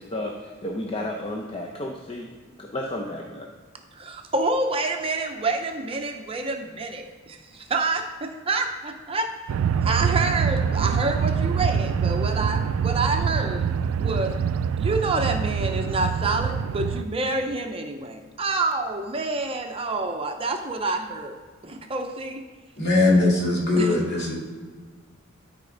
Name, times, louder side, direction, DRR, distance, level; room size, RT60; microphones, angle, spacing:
voice 1, 0.0-2.3 2.6-3.5, left 1 dB, 25° left, 0 dB, 0.7 m, -32 dB
voice 2, 3.9-9.3 9.7-13.7 14.0-14.3 14.8-21.4 21.6-22.4 23.8-24.0, right 3 dB, 25° right, 4 dB, 0.6 m, -27 dB
sound 1, 9.5-17.0, right 7 dB, 80° right, 0.3 m, -25 dB
voice 3, 22.8-24.3, left 2 dB, 55° left, -3 dB, 2.3 m, -20 dB
13.0 x 5.0 x 3.9 m, 1.5 s
head